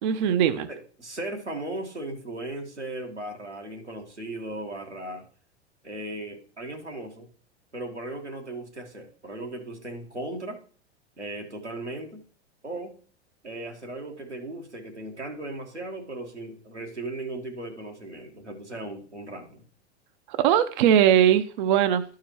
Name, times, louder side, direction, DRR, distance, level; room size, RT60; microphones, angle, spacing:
voice 1, 0.0-0.7 20.3-22.0, right 10 dB, 45° right, 11 dB, 0.5 m, -20 dB
voice 2, 0.7-5.2 5.8-7.3 7.7-10.6 11.2-12.2 12.6-12.9 13.4-19.6, right 2 dB, 90° right, 1 dB, 1.5 m, -37 dB
12.5 x 4.7 x 3.0 m, 0.42 s
figure-of-eight pair, 90°, 34 cm